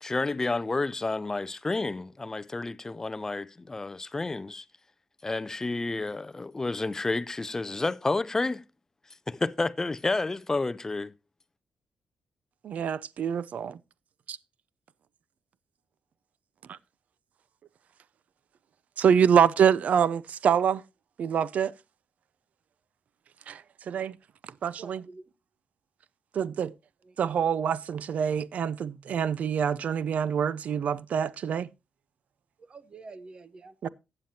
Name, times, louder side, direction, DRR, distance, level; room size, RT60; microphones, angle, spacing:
voice 1, 0.0-4.6 5.2-8.6 9.3-11.1, left 3 dB, 20° left, 0.5 m, -30 dB
voice 2, 12.6-13.8 14.3-14.4 16.7-16.8 19.0-20.8 21.2-21.7 23.5-24.2 24.6-25.0 26.3-26.7 27.2-31.7 33.8-33.9, right 8 dB, 60° right, 0.5 m, -25 dB
voice 3, 24.7-25.3 27.0-27.2 32.6-33.9, right 3 dB, 35° right, 0.8 m, -48 dB
15.0 x 8.7 x 2.8 m
wide cardioid pair, 135°, 3 cm